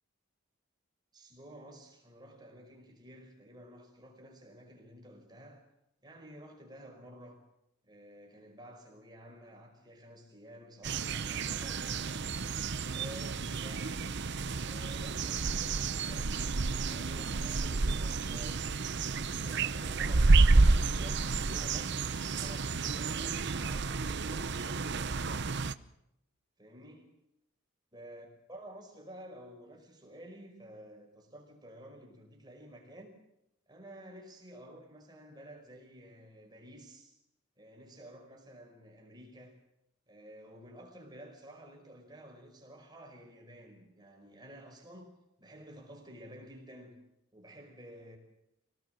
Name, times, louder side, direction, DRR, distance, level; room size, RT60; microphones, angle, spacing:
voice 1, 1.1-5.6 6.0-7.4 7.8-12.5 12.9-14.2 14.6-16.4 16.8-18.7 19.1-25.7 26.6-27.1 27.9-33.1 33.7-37.2 37.6-39.6 40.1-45.1 45.4-47.0 47.3-48.2, right 1 dB, 20° right, 2 dB, 5.2 m, -52 dB
sound 1, 10.8-25.7, right 3 dB, 55° right, 0.8 m, -30 dB
25.0 x 18.0 x 7.8 m, 0.82 s
head